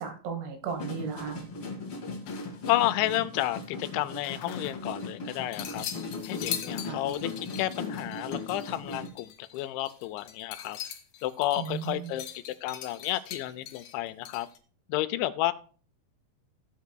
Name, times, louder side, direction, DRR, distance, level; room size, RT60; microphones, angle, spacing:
voice 1, 0.0-1.4 6.9-7.0 11.6-12.1, right 6 dB, 80° right, 5 dB, 3.6 m, -35 dB
sound 1, 0.7-9.1, left 3 dB, 40° left, 2.2 m, -38 dB
sound 2, 2.3-3.2 3.5-5.1 5.5-14.6, left 9 dB, 70° left, 2.0 m, -42 dB
voice 2, 2.7-5.9 6.3-10.8 11.2-14.5 14.9-15.5, left 15 dB, 85° left, 12 dB, 3.0 m, -31 dB
17.0 x 8.1 x 2.3 m, 0.40 s
omnidirectional pair, 5.2 m